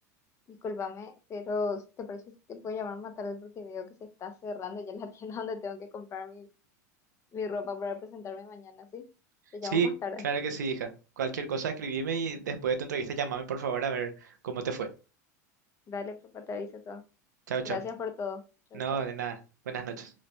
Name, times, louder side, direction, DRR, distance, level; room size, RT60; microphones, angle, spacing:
voice 1, 0.5-2.2 2.5-6.5 7.3-9.1 9.5-10.2 15.9-17.0 17.6-18.4 18.7-19.0, left 4 dB, 30° left, 0.5 m, -37 dB
voice 2, 10.2-10.9 11.2-14.1 14.4-14.9 17.5-17.8 18.7-19.4 19.7-20.1, right 6 dB, 90° right, 0.5 m, -31 dB
3.0 x 2.0 x 2.5 m
hypercardioid pair, 100°, 9 cm